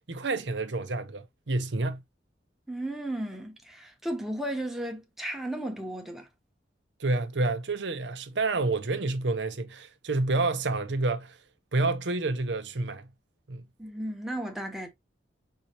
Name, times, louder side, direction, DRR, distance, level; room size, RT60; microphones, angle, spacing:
voice 1, 0.1-2.0 7.0-11.4 11.7-13.1 13.5-13.6, right 2 dB, 80° right, 0.7 m, -29 dB
voice 2, 2.7-6.3 13.8-14.9, right 1 dB, ahead, 0.9 m, -34 dB
5.5 x 2.8 x 2.9 m
head